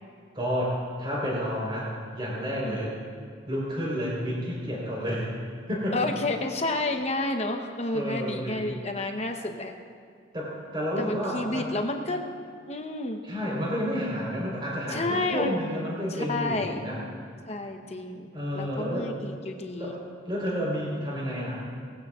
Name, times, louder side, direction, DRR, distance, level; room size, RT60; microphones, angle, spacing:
voice 1, 0.3-2.9 3.5-5.3 5.7-6.0 7.9-8.6 10.3-11.7 13.2-17.0 18.3-19.1 19.7-19.9 20.3-21.7, equal, 25° right, -5 dB, 4.1 m, -30 dB
voice 2, 5.9-9.7 11.0-12.2 12.7-13.2 14.9-15.6 16.1-16.8 17.5-20.0, left 2 dB, 30° left, 4 dB, 1.0 m, -30 dB
19.5 x 15.5 x 2.5 m, 2.1 s
head